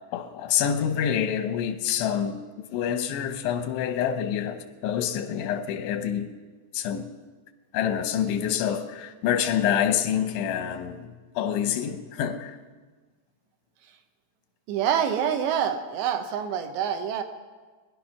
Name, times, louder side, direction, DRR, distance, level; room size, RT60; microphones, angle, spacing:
voice 1, 0.1-6.3 6.7-7.1 7.7-12.6, left 9 dB, 85° left, 3.4 m, -27 dB
voice 2, 14.7-17.2, right 8 dB, 80° right, 3.1 m, -26 dB
21.5 x 11.0 x 5.9 m
omnidirectional pair, 5.2 m